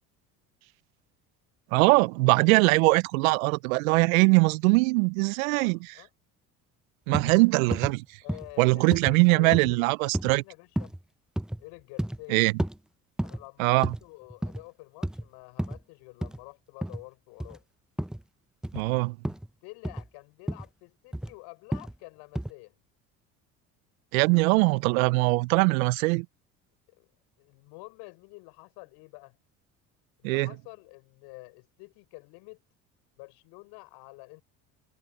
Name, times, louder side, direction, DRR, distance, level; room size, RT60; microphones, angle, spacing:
voice 1, 1.7-5.8 7.1-8.0 8.6-10.4 12.3-12.5 13.6-13.9 18.7-19.2 24.1-26.3 30.2-30.5, right 26 dB, 80° right, 0.6 m, -22 dB
voice 2, 5.4-6.1 8.2-11.0 11.6-12.4 13.2-17.6 19.6-22.7 26.9-27.1 27.4-29.4 30.2-32.6 33.2-34.4, left 27 dB, 75° left, 6.2 m, -48 dB
sound 1, 7.1-7.4 7.7-7.9 8.3-8.5 8.9-9.1 9.5-9.7 10.1-10.4 10.8-11.0 11.4-11.6 12.0-12.2 12.6-12.8 13.2-13.4 13.8-14.0 14.3-14.6 15.0-15.3 15.6-15.8 16.2-16.4 16.8-17.0 17.4-17.6 18.0-18.2 18.6-18.9 19.2-19.5 19.8-20.1 20.5-20.7 21.1-21.3 21.7-22.0 22.3-22.5, right 1 dB, ahead, 0.5 m, -31 dB
hypercardioid pair, 70°, 41 cm